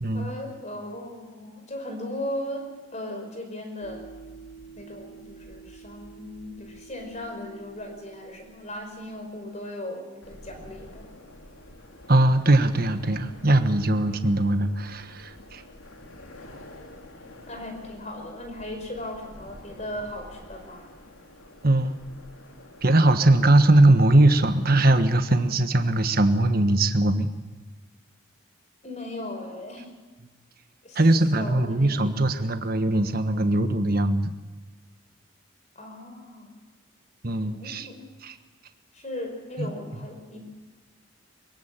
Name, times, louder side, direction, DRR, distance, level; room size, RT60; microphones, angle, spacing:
voice 1, 0.1-4.1 4.8-11.1 17.5-20.9 28.8-30.0 30.8-31.1 31.3-32.2 35.8-36.5 37.4-38.1 38.9-40.4, left 1 dB, 35° left, 4 dB, 5.1 m, -37 dB
sound 1, 3.8-9.7, right 4 dB, 55° left, 3.4 m, -48 dB
sound 2, 10.2-24.8, left 1 dB, 85° left, 3.4 m, -48 dB
voice 2, 12.1-15.6 21.6-21.9 22.8-27.3 30.9-34.3 37.2-37.9 38.2-38.3 39.6-39.7, right 1 dB, 45° right, 8 dB, 1.3 m, -20 dB
24.0 x 16.0 x 9.0 m, 1.3 s
head